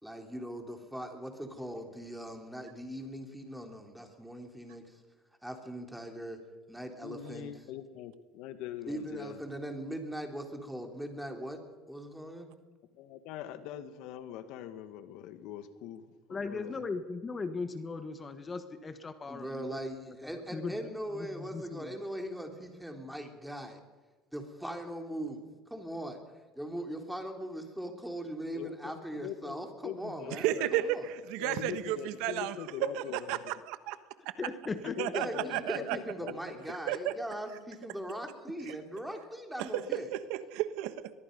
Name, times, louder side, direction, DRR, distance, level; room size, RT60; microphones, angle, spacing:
voice 1, 0.0-5.0 5.4-6.4 6.7-7.5 8.9-11.6 11.9-12.5 19.3-23.8 24.3-26.2 26.6-31.0 35.1-40.1, right 1 dB, ahead, 3 dB, 3.6 m, -40 dB
voice 2, 7.0-9.4 12.9-16.8 28.5-30.7 31.4-33.4 34.8-36.6, left 10 dB, 70° left, 10 dB, 1.8 m, -42 dB
voice 3, 16.3-19.8 20.2-20.7 21.1-21.9 34.4-35.0, left 4 dB, 25° left, 10 dB, 1.4 m, -38 dB
voice 4, 30.3-34.0 34.2-34.3 35.0-36.0 36.9-37.2 38.6-38.8 39.6-41.1, right 13 dB, 75° right, 12 dB, 1.3 m, -33 dB
22.5 x 22.0 x 5.5 m, 1.3 s
supercardioid pair, 115°, 0 cm